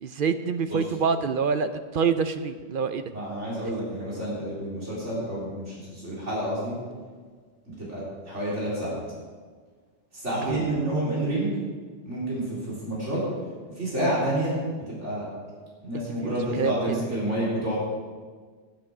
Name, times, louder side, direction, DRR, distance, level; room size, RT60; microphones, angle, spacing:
voice 1, 0.0-3.0 10.5-10.6 15.9-16.9, right 5 dB, 55° right, 10 dB, 0.7 m, -27 dB
voice 2, 3.1-6.7 7.7-9.0 10.1-11.5 12.0-13.2 13.8-14.6 14.9-15.2 15.8-17.8, right 1 dB, 85° right, -7 dB, 4.3 m, -29 dB
11.5 x 10.0 x 6.0 m, 1.5 s
omnidirectional pair, 1.2 m